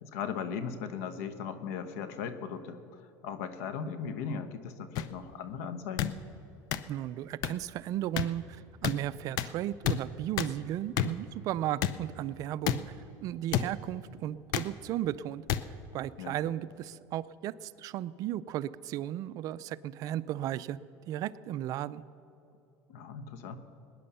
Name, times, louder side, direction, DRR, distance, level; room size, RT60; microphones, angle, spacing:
voice 1, 0.0-6.2 16.2-16.4 22.9-23.6, left 6 dB, 85° left, 11 dB, 1.1 m, -38 dB
sound 1, 4.9-5.0 6.0-6.1 6.7-6.8 7.4-7.5 8.2-8.3 8.8-8.9 9.4-9.5 9.8-10.0 10.4-10.5 11.0-11.1 11.8-11.9 12.6-12.8 13.5-13.7 14.5-14.7 15.5-15.6 16.4-16.6, left 11 dB, 60° left, 0.7 m, -29 dB
voice 2, 6.9-20.8 21.1-22.0, right 12 dB, 50° right, 16 dB, 0.4 m, -35 dB
19.0 x 9.9 x 6.9 m, 3.0 s
supercardioid pair, 130°, 8 cm